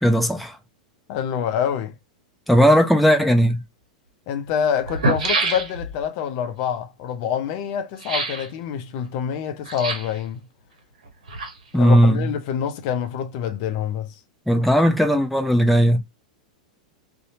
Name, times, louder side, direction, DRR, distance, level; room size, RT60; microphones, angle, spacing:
voice 1, 0.0-0.6 2.5-3.6 11.7-12.3 14.5-16.0, equal, ahead, 0.6 m, -17 dB
voice 2, 1.1-1.9 4.3-10.5 11.8-14.2, left 8 dB, 50° left, 0.4 m, -26 dB
sound 1, 3.5-3.6 4.5-4.6 4.8-6.0 8.0-8.5 9.6-10.2 11.0-11.8 12.1-12.2, right 3 dB, 75° right, 0.8 m, -26 dB
2.7 x 2.1 x 2.6 m
figure-of-eight pair, 95°, 4 cm